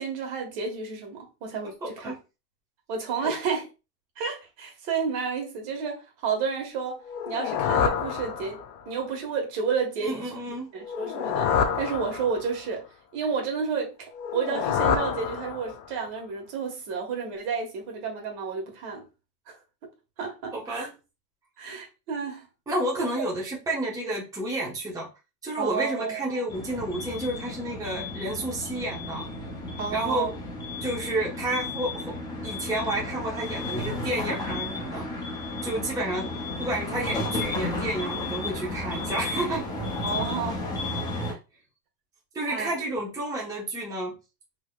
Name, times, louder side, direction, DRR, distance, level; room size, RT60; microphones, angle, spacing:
voice 1, 0.0-2.1 2.9-3.6 4.2-8.6 8.8-10.3 10.7-12.8 13.1-19.1 19.5-19.6 20.2-20.9 21.6-22.5 25.6-26.4 29.8-30.3 40.0-40.7 41.1-41.4 42.4-42.7, right 5 dB, 50° right, 1.4 m, -31 dB
voice 2, 1.8-2.2 3.2-3.3 10.0-10.7 20.5-20.9 22.7-25.1 25.4-29.3 29.9-30.3 30.8-32.2 32.4-35.3 35.6-39.7 42.3-44.2, right 1 dB, 5° right, 0.9 m, -30 dB
sound 1, 7.1-8.9 10.8-12.7 14.1-16.0, left 7 dB, 70° left, 0.8 m, -28 dB
sound 2, 26.5-41.3, left 2 dB, 10° left, 0.3 m, -33 dB
3.8 x 2.8 x 2.2 m
supercardioid pair, 125°, 49 cm